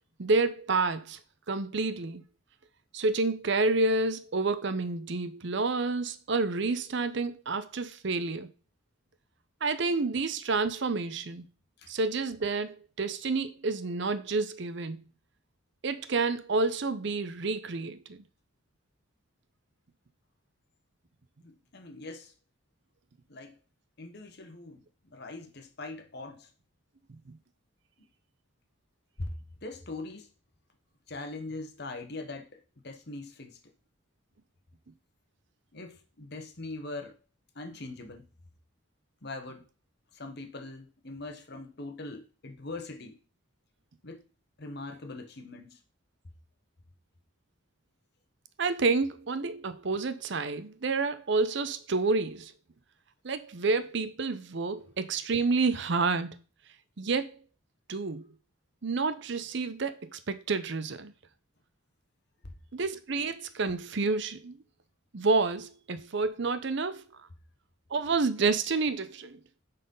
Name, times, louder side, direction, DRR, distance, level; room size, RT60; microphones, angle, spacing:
voice 1, 0.2-1.2 1.5-2.2 2.9-8.5 9.6-11.5 11.9-15.0 15.8-18.2 27.1-27.2 48.6-52.5 53.2-56.4 57.0-57.3 57.9-58.3 58.8-61.1 62.7-64.6 65.1-67.0 67.9-69.4, right 3 dB, 60° right, 0.6 m, -29 dB
voice 2, 21.4-22.3 23.3-23.6 24.0-24.8 25.1-26.5 29.2-29.3 29.6-30.3 31.1-33.6 35.7-37.2 37.5-38.2 39.2-39.7 40.1-43.2 44.0-44.2 44.6-45.8 62.4-62.5, left 2 dB, 55° left, 1.1 m, -41 dB
7.6 x 4.2 x 5.4 m
head